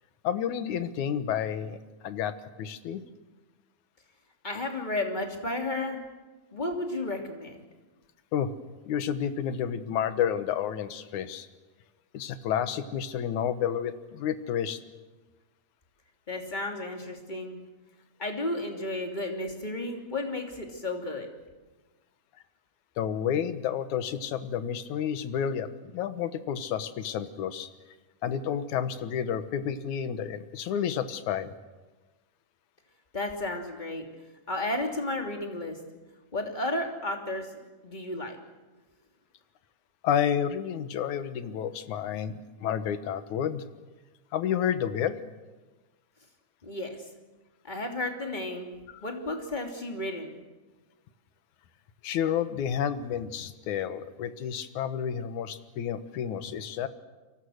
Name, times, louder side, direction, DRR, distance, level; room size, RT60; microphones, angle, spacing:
voice 1, 0.2-1.8 2.0-3.0 8.3-8.5 8.9-11.5 12.1-14.8 23.0-27.7 28.2-31.5 40.0-43.6 44.3-45.2 48.9-49.0 52.0-56.9, left 8 dB, 80° left, 11 dB, 2.6 m, -30 dB
voice 2, 4.4-6.0 6.5-7.6 16.3-17.6 18.2-21.3 33.1-34.1 34.5-35.8 36.3-37.5 37.8-38.4 46.6-47.0 47.6-48.7 49.0-50.3, left 2 dB, 15° left, 2 dB, 2.8 m, -33 dB
29.5 x 23.5 x 6.5 m, 1.2 s
omnidirectional pair, 3.4 m